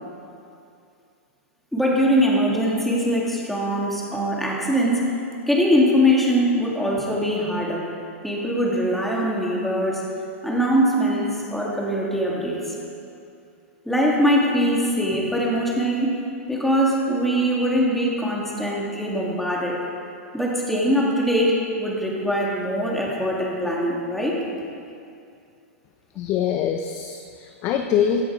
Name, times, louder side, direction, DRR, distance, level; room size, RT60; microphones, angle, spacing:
voice 1, 1.7-5.1 5.5-7.8 8.2-10.0 10.4-12.7 13.8-16.2 16.5-19.8 20.3-24.4, equal, ahead, -4 dB, 2.8 m, -22 dB
voice 2, 26.2-28.2, left 9 dB, 35° left, 5 dB, 0.8 m, -24 dB
16.5 x 10.5 x 5.0 m, 2.5 s
hypercardioid pair, 125°, 8 cm